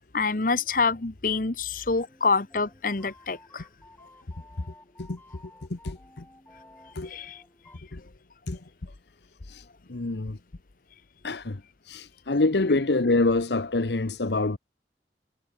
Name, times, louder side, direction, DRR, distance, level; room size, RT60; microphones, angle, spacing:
voice 1, 0.1-3.6 7.0-7.4, left 4 dB, 50° left, 1.1 m, -26 dB
sound 1, 1.8-7.8, left 1 dB, 10° left, 7.5 m, -54 dB
voice 2, 5.7-6.3 6.9-7.1 7.9-8.0 8.5-8.6 9.5-10.4 11.2-14.6, left 2 dB, 75° left, 1.0 m, -26 dB
head